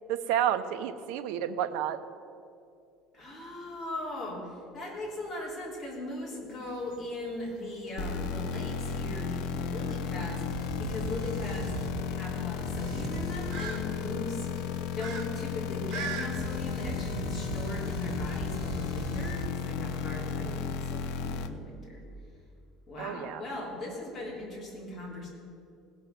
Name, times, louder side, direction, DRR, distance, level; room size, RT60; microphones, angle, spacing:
voice 1, 0.1-2.0 20.3-20.7 23.0-23.4, right 10 dB, 80° right, 10 dB, 0.7 m, -31 dB
voice 2, 3.1-11.7 12.1-14.5 14.9-22.0 22.9-25.3, left 1 dB, 30° left, -4 dB, 3.4 m, -39 dB
sound 1, 6.5-16.3, right 6 dB, 65° right, 1.8 m, -44 dB
sound 2, 8.0-21.5, left 7 dB, 70° left, 0.8 m, -34 dB
sound 3, 10.5-14.0 16.3-19.5, right 9 dB, 40° right, 0.3 m, -40 dB
18.0 x 6.3 x 7.9 m, 2.5 s
cardioid pair, 165°, 0 cm